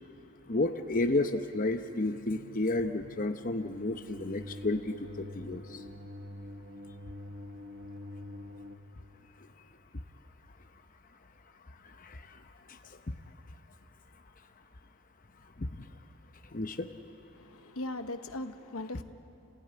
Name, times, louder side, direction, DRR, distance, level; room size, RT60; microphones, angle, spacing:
voice 1, 0.5-5.8 12.0-12.2 12.7-12.8 13.1-13.2 15.6-15.7 16.5-16.9, left 2 dB, 40° left, 7 dB, 0.8 m, -31 dB
sound 1, 2.1-8.8, left 1 dB, 60° right, 1.4 m, -46 dB
voice 2, 17.4-19.0, left 2 dB, 80° left, 9 dB, 1.0 m, -39 dB
30.0 x 16.0 x 9.8 m, 3.0 s
head